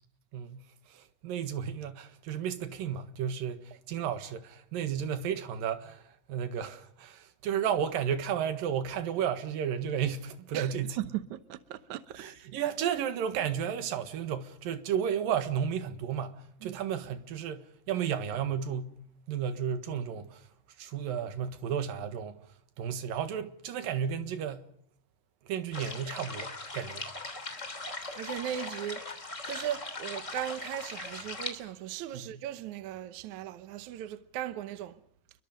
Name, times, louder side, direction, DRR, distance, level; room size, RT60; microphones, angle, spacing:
voice 1, 0.3-0.6 0.9-6.0 6.3-11.0 12.1-19.0 19.3-20.4 20.8-22.4 22.8-24.6 25.5-27.1 32.1-32.3, right 8 dB, 85° right, 3.3 m, -33 dB
voice 2, 11.0-12.2 16.6-16.8 28.2-29.0 29.4-35.0, right 11 dB, 70° right, 2.2 m, -37 dB
sound 1, 25.7-31.5, left 3 dB, 20° left, 3.3 m, -39 dB
29.0 x 23.0 x 5.1 m
omnidirectional pair, 3.9 m